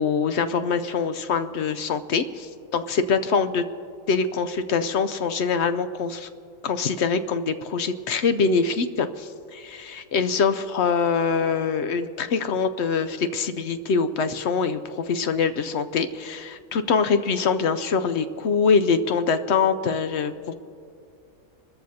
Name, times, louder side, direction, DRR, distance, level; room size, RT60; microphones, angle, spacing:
voice 1, 0.0-3.6 4.1-6.3 6.6-20.5, left 5 dB, 65° left, 11 dB, 0.7 m, -24 dB
29.0 x 14.0 x 2.8 m, 2.4 s
omnidirectional pair, 1.5 m